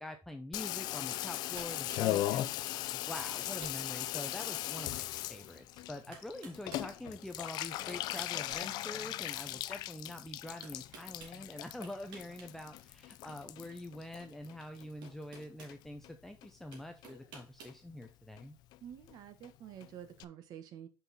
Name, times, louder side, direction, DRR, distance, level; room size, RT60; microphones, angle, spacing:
voice 1, 0.0-18.6, left 1 dB, 5° left, 5 dB, 0.6 m, -45 dB
Water tap faucet / Bathtub (filling or washing), 0.5-15.1 15.4-16.1 16.4-16.5 16.7-16.8 17.0-17.4 17.7-17.8 18.0-18.1 18.4-18.5 18.7-18.8 19.0-19.1 19.4-19.5 19.8-19.9 20.2-20.3, left 15 dB, 60° left, 0.4 m, -38 dB
sound 1, 1.1-1.3 1.5-2.1 2.9-3.0 3.2-3.8 4.4-4.5 5.6-5.7 6.1-6.9 7.6-9.3 10.6-11.4 11.8-12.5 12.8-13.0 14.4-14.5 15.0-15.8 16.7-17.8, right 4 dB, 70° right, 2.9 m, -53 dB
voice 2, 18.8-20.9, right 10 dB, 55° right, 10 dB, 1.1 m, -49 dB
6.0 x 5.5 x 4.1 m, 0.29 s
cardioid pair, 150°, 8 cm